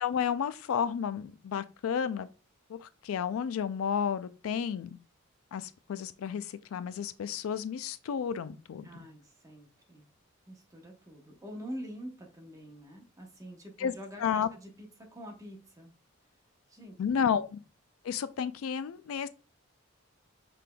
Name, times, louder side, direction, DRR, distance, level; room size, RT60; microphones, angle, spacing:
voice 1, 0.0-2.3 2.7-5.0 5.5-8.9 13.8-13.9 14.2-14.5 17.0-17.6 18.0-19.3, left 7 dB, 90° left, 0.4 m, -32 dB
voice 2, 8.7-10.1 10.5-15.9 16.7-17.0, equal, 15° right, 1.0 m, -46 dB
5.8 x 3.4 x 2.2 m
head